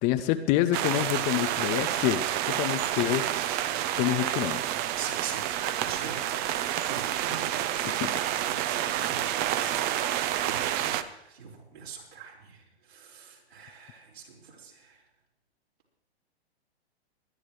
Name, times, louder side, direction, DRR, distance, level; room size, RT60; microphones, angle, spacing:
voice 1, 0.0-3.3 4.0-4.6 7.8-8.3 10.5-10.6, left 14 dB, 25° left, 12 dB, 0.5 m, -27 dB
sound 1, 0.7-11.0, right 12 dB, 30° right, 0.7 m, -29 dB
voice 2, 5.0-15.0, right 6 dB, 70° right, -3 dB, 4.9 m, -44 dB
22.0 x 11.0 x 3.2 m, 0.86 s
hypercardioid pair, 115°, 33 cm